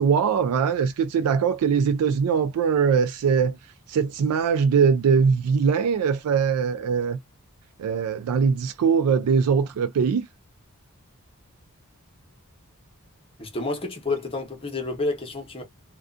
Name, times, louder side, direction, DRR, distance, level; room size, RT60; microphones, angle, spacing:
voice 1, 0.0-3.6 3.9-7.2 7.8-10.3, right 6 dB, 85° right, 0.3 m, -21 dB
voice 2, 13.4-15.6, left 3 dB, 25° left, 0.9 m, -29 dB
2.4 x 2.3 x 2.3 m
head